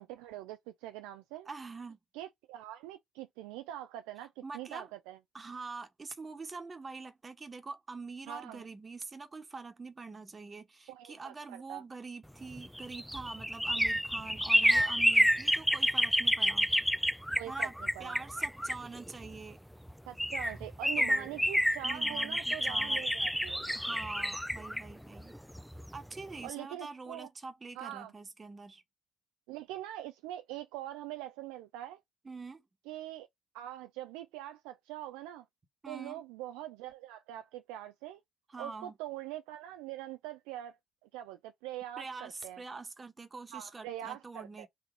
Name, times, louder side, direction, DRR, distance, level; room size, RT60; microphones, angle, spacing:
voice 1, 0.0-1.5 2.1-5.2 8.3-8.6 10.9-11.8 14.6-14.9 17.4-18.2 20.1-23.6 26.4-27.3 27.8-28.1 29.5-32.0 32.9-33.3 33.5-35.5 35.9-38.2 38.6-42.6 43.5-44.7, right 13 dB, 80° right, 0.4 m, -43 dB
voice 2, 1.5-2.0 4.4-4.9 5.3-16.8 17.5-17.7 18.0-19.6 21.0-21.5 21.8-23.0 23.7-25.3 25.9-28.8 32.2-32.6 35.8-36.2 38.5-38.9 42.0-44.7, right 4 dB, 30° right, 1.3 m, -45 dB
sound 1, 12.5-19.3 19.9-20.0 20.2-26.0 26.3-26.4, equal, ahead, 0.4 m, -29 dB
4.1 x 2.6 x 4.5 m
hypercardioid pair, 50°, 0 cm